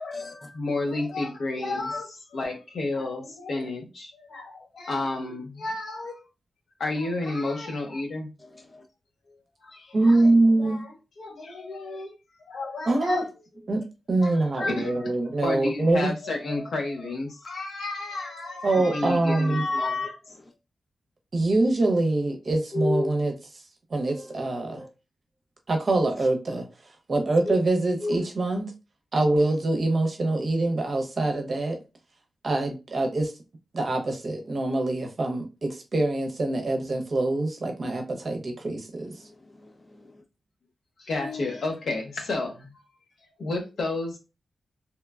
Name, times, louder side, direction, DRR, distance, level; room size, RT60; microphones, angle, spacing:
voice 1, 0.0-6.2 6.8-8.3 9.6-10.3 10.6-10.9 11.2-12.1 12.4-13.3 14.2-20.3 41.0-42.7 43.2-44.2, left 2 dB, 75° left, 0.7 m, -31 dB
voice 2, 8.4-8.8 13.1-13.2 22.7-23.1 24.1-24.9 27.5-27.6 28.0-28.2 39.6-40.1 41.2-41.6, left 2 dB, 25° left, 0.5 m, -32 dB
voice 3, 9.9-10.8 12.9-13.2 13.7-13.8 14.1-16.1 18.6-19.7 21.3-23.3 23.9-24.8 25.7-26.7 27.1-28.7 29.1-31.8 32.4-33.3 33.7-39.1, right 2 dB, 45° right, 0.7 m, -24 dB
2.9 x 2.1 x 2.3 m
wide cardioid pair, 120°, 0 cm